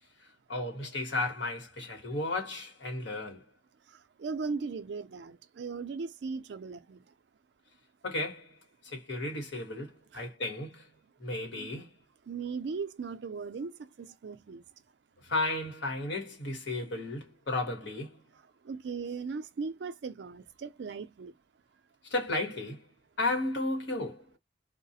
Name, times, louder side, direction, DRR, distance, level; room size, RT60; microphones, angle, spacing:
voice 1, 0.5-3.4 8.0-8.5 8.8-10.9 11.2-11.9 15.2-18.2 22.1-22.8 23.2-24.3, left 2 dB, 75° left, 1.3 m, -34 dB
voice 2, 3.9-7.1 10.1-10.3 11.6-11.7 12.3-14.6 18.6-21.3, right 5 dB, 65° right, 0.4 m, -38 dB
2.3 x 2.1 x 2.6 m
head